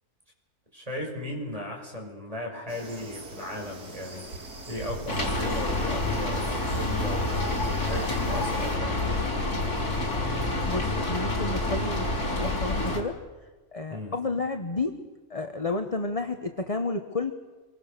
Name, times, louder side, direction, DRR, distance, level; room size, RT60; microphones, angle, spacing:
voice 1, 0.7-4.3 4.7-7.3 7.8-9.6 13.9-14.1, left 1 dB, 25° right, 0 dB, 6.2 m, -36 dB
sound 1, 2.7-8.8, right 2 dB, 90° right, 3.3 m, -43 dB
Rain, 5.1-13.0, left 2 dB, 75° left, 4.3 m, -28 dB
voice 2, 10.6-13.2 13.7-15.0 15.3-17.3, left 3 dB, 25° left, 6 dB, 1.2 m, -31 dB
27.0 x 24.0 x 6.8 m, 1.3 s
omnidirectional pair, 1.6 m